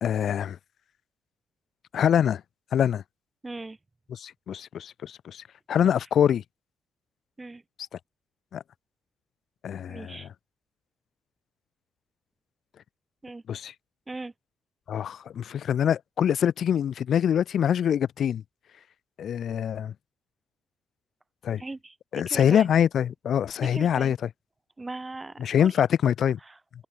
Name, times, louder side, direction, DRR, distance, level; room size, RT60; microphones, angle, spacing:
voice 1, 0.0-0.6 1.9-2.4 2.7-3.0 4.1-6.4 8.5-8.6 9.6-10.3 13.5-13.7 14.9-18.4 19.2-19.9 21.4-21.6 22.1-24.2 25.4-26.4, left 9 dB, 60° left, 0.4 m, -24 dB
voice 2, 3.4-3.8 5.7-5.9 7.4-7.6 9.9-10.3 13.2-13.4 14.1-14.3 21.6-22.7 23.6-24.1 24.8-25.7 26.5-26.9, right 2 dB, 20° right, 1.2 m, -39 dB
cardioid pair, 90°, 0 cm